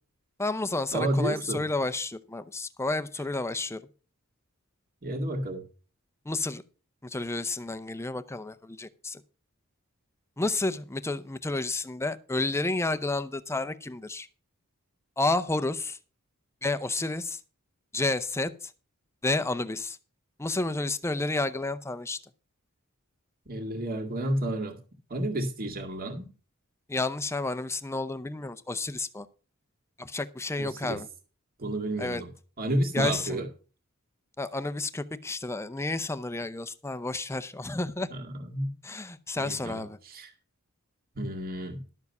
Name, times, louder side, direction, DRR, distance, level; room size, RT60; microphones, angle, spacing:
voice 1, 0.4-3.8 6.3-6.6 7.0-9.2 10.4-14.3 15.2-16.0 16.6-17.4 17.9-18.7 19.2-20.0 20.4-22.2 26.9-29.3 30.0-31.1 32.0-32.2 32.9-33.4 34.4-38.1 38.8-40.0, left 2 dB, 10° left, 0.6 m, -31 dB
voice 2, 0.9-1.7 5.0-5.6 23.5-24.8 25.1-26.3 30.6-31.0 31.6-32.3 32.6-33.5 38.1-38.7 39.3-40.3 41.2-41.8, right 1 dB, 45° right, 2.0 m, -31 dB
12.0 x 7.2 x 5.4 m
head